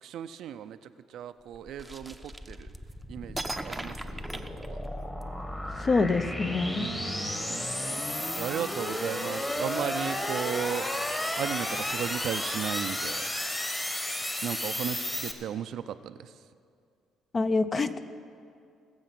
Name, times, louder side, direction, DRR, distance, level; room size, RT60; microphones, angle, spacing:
voice 1, 0.0-2.7 3.1-4.8 6.8-7.7 8.4-10.9 11.4-13.3 14.4-16.4, right 9 dB, 70° right, 11 dB, 0.5 m, -36 dB
sound 1, 1.5-15.3, left 1 dB, 15° left, 1.4 m, -33 dB
sound 2, 1.8-2.9 3.4-5.2, right 2 dB, 10° right, 0.7 m, -38 dB
voice 2, 5.8-6.9 17.3-18.0, left 3 dB, 35° left, 11 dB, 0.7 m, -26 dB
20.5 x 7.2 x 5.9 m, 2.3 s
cardioid pair, 95°, 0 cm